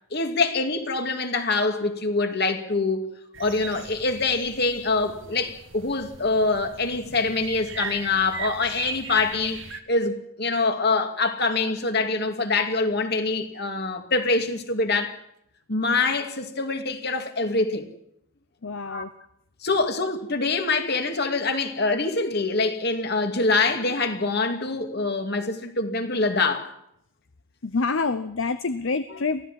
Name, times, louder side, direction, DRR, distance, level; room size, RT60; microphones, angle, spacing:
voice 1, 0.1-3.1 3.4-15.2 15.7-17.9 18.8-19.0 19.6-26.7, left 3 dB, 50° left, 2.3 m, -25 dB
sound 1, 3.3-9.8, right 6 dB, 65° right, 1.7 m, -39 dB
voice 2, 18.6-19.1 27.6-29.4, left 4 dB, 65° left, 0.8 m, -27 dB
23.5 x 16.0 x 7.7 m
head